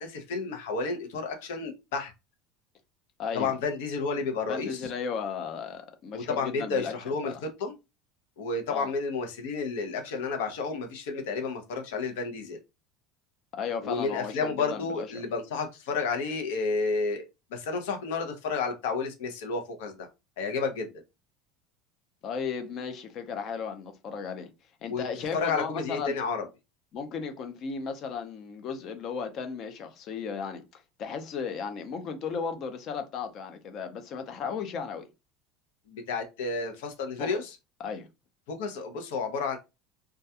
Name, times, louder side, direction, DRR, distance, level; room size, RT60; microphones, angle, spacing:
voice 1, 0.0-2.1 3.3-4.9 6.1-7.3 7.6-7.8 8.4-12.6 13.8-20.1 20.4-20.9 24.9-25.0 25.3-26.4 35.9-37.5 38.5-39.6, left 4 dB, 85° left, 0.6 m, -31 dB
voice 2, 3.2-3.5 4.5-6.9 7.2-7.4 8.7-8.9 13.5-15.2 22.2-24.5 24.8-26.2 26.9-35.1 37.2-37.3 37.8-38.1, left 6 dB, 40° left, 0.5 m, -35 dB
2.3 x 2.2 x 2.7 m
cardioid pair, 150°, 0 cm